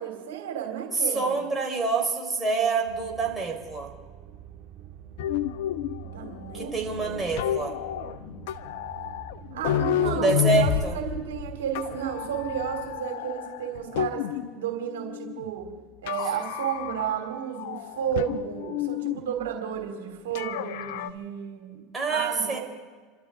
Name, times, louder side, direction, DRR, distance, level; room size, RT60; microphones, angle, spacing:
voice 1, 0.0-1.3 6.0-7.2 9.5-14.3 14.5-15.7 16.0-21.8 22.1-22.6, right 9 dB, 80° right, 3 dB, 3.1 m, -32 dB
voice 2, 0.9-3.9 6.5-7.8 9.9-10.9 21.9-22.6, right 3 dB, 15° right, 0 dB, 4.3 m, -27 dB
sound 1, 2.8-13.0, right 9 dB, 50° right, 1.7 m, -46 dB
sound 2, 5.2-14.6 14.9-15.7 16.1-17.3 17.5-19.2 20.4-21.1, left 10 dB, 70° left, 0.9 m, -30 dB
29.5 x 13.0 x 3.7 m, 1.5 s
hypercardioid pair, 90°, 0 cm